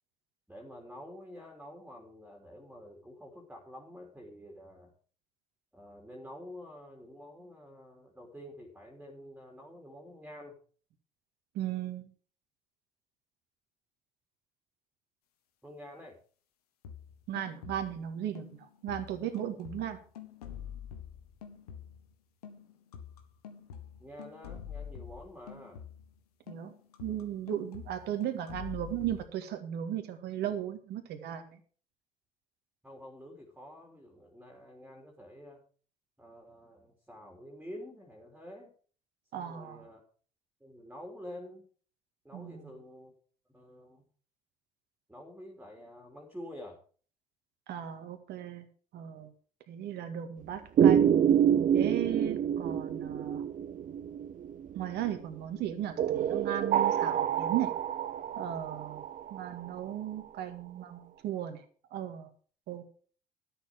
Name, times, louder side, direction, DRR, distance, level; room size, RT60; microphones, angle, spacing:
voice 1, 0.5-4.9 5.7-10.6 15.6-16.2 24.0-25.8 32.8-35.6 36.2-38.7 39.3-40.0 40.6-41.7 42.2-43.1 43.5-44.1 45.1-46.8, equal, 5° right, 1 dB, 3.3 m, -48 dB
voice 2, 11.5-12.1 17.3-20.0 26.5-26.7 27.0-31.6 39.3-39.8 42.3-42.6 47.7-48.7 48.9-49.3 49.7-51.2 51.7-53.4 54.8-57.7 58.4-59.0 59.3-61.6 61.9-62.3 62.7-62.9, right 10 dB, 60° right, 8 dB, 2.0 m, -36 dB
sound 1, 16.8-18.1 18.3-22.1 22.4-26.2 26.5-29.2, left 8 dB, 80° left, 1.6 m, -47 dB
sound 2, 50.8-55.0 56.0-59.8, right 9 dB, 45° right, 0.7 m, -27 dB
12.5 x 7.2 x 6.2 m, 0.43 s
hypercardioid pair, 55°, 19 cm